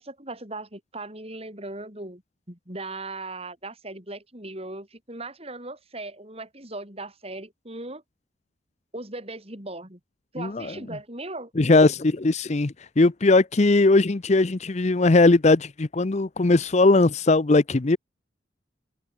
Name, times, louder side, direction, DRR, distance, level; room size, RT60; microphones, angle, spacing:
voice 1, 0.0-2.2 2.5-8.0 8.9-10.0 10.3-11.5, right 2 dB, 30° right, 6.3 m, -38 dB
voice 2, 10.4-10.7 11.6-18.0, left 2 dB, 35° left, 0.6 m, -19 dB
open air
head